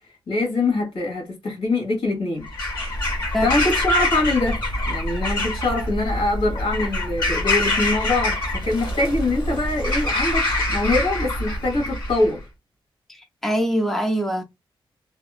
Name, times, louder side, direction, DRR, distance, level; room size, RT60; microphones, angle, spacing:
voice 1, 0.3-2.5 3.4-4.6 4.9-12.4, left 2 dB, 85° left, 1.4 m, -23 dB
Bird vocalization bird call bird song / Crow, 2.4-12.3, left 1 dB, 55° left, 1.6 m, -25 dB
voice 2, 13.1-14.4, equal, 5° left, 0.4 m, -23 dB
2.7 x 2.4 x 2.3 m
wide cardioid pair, 175°, 9 cm